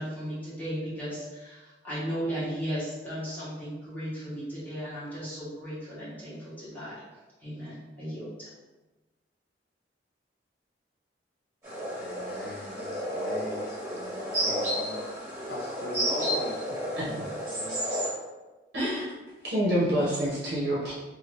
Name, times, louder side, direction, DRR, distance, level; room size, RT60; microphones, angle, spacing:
voice 1, 0.0-7.0 7.4-8.5, equal, 10° left, -11 dB, 1.0 m, -36 dB
sound 1, 11.6-18.1, equal, 15° right, 1.3 m, -32 dB
voice 2, 12.0-17.3 17.6-17.9, left 1 dB, 60° left, 0 dB, 0.5 m, -41 dB
voice 3, 16.9-17.2 18.7-19.0 19.4-20.9, equal, 55° right, -8 dB, 0.8 m, -27 dB
2.7 x 2.5 x 3.2 m, 1.2 s
head